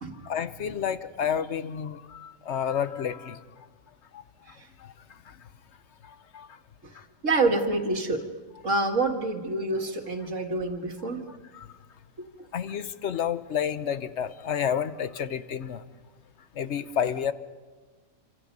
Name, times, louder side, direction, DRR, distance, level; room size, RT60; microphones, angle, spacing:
voice 1, 0.2-3.4 4.1-4.2 4.8-4.9 6.0-6.5 11.3-11.7 12.5-15.8 16.5-17.3, left 8 dB, 60° left, 12 dB, 1.2 m, -30 dB
voice 2, 7.2-8.2 8.6-11.2, right 2 dB, 65° right, 3 dB, 2.3 m, -27 dB
27.0 x 26.5 x 5.4 m, 1.4 s
omnidirectional pair, 1.4 m